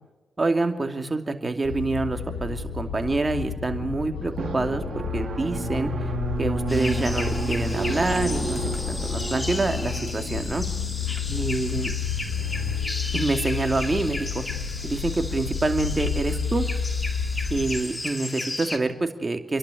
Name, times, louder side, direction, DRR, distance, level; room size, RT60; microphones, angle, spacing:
voice 1, 0.4-5.9 6.4-10.6 11.3-11.9 13.1-14.4 14.8-16.7 17.5-19.6, right 3 dB, 35° right, 5 dB, 2.7 m, -27 dB
sound 1, 1.6-17.8, left 6 dB, 90° left, 6.8 m, -30 dB
Drum, 4.4-13.7, right 4 dB, 55° right, 3.2 m, -33 dB
sound 2, 6.7-18.8, left 2 dB, 30° left, 2.5 m, -35 dB
29.5 x 11.5 x 8.4 m, 1.1 s
supercardioid pair, 45°, 0 cm